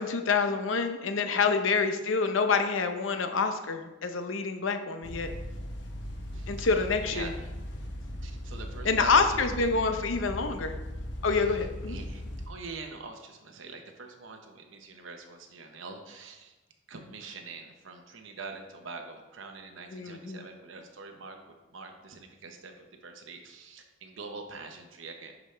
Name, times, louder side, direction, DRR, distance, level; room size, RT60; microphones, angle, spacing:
voice 1, 0.0-5.3 6.5-7.3 8.8-10.8 11.2-12.0 19.9-20.4, left 4 dB, 85° left, 7 dB, 0.7 m, -27 dB
sound 1, 5.0-12.5, equal, 60° left, 1.0 m, -38 dB
voice 2, 6.3-7.3 8.2-9.1 9.6-9.7 11.3-11.6 11.9-16.5 16.9-25.3, right 4 dB, 85° right, 4 dB, 1.0 m, -44 dB
11.0 x 5.2 x 3.3 m, 1.1 s
head